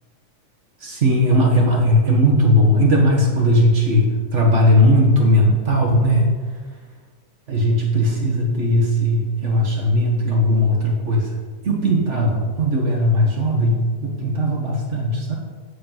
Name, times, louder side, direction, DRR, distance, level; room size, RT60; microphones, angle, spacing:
voice 1, 0.8-6.4 7.5-11.3 11.6-15.3, equal, 80° right, -1 dB, 0.6 m, -18 dB
15.5 x 5.4 x 5.7 m, 1.5 s
omnidirectional pair, 3.7 m